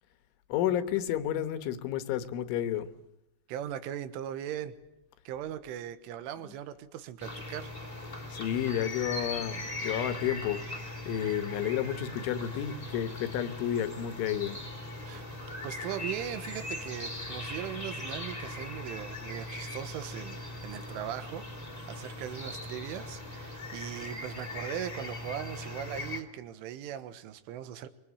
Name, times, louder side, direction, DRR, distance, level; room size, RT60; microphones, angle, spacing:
voice 1, 0.5-2.9 6.4-6.5 8.3-14.6, left 10 dB, 80° left, 11 dB, 3.7 m, -31 dB
voice 2, 3.5-4.8 5.3-7.7 15.1-15.3 15.6-27.9, right 10 dB, 85° right, 12 dB, 3.8 m, -39 dB
sound 1, 7.2-26.2, left 2 dB, 10° left, 2.3 m, -40 dB
26.0 x 22.5 x 8.6 m, 0.85 s
omnidirectional pair, 5.6 m